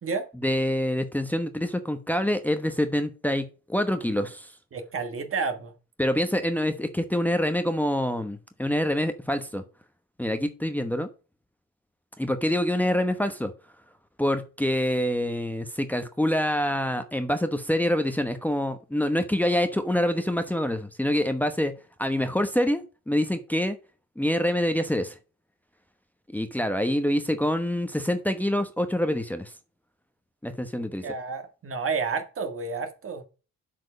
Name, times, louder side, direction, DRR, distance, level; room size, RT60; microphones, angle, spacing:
voice 1, 0.4-4.5 6.0-9.6 10.2-11.1 12.2-13.5 14.2-21.7 22.0-23.8 24.2-25.2 26.3-29.5 30.4-31.0, left 1 dB, 5° left, 1.0 m, -26 dB
voice 2, 4.7-5.7 31.0-33.3, right 5 dB, 45° right, 1.8 m, -30 dB
8.1 x 4.8 x 5.1 m
cardioid pair, 90°, 30 cm